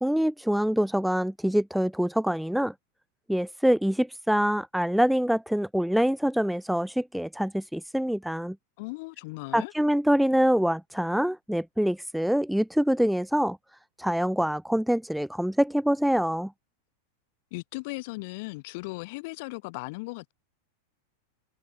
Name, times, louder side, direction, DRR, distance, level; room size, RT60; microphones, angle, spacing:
voice 1, 0.0-2.7 3.3-8.6 9.5-13.6 14.0-16.5, equal, ahead, 0.5 m, -25 dB
voice 2, 8.8-9.7 17.5-20.3, left 26 dB, 50° left, 4.4 m, -37 dB
figure-of-eight pair, 90°, 0 cm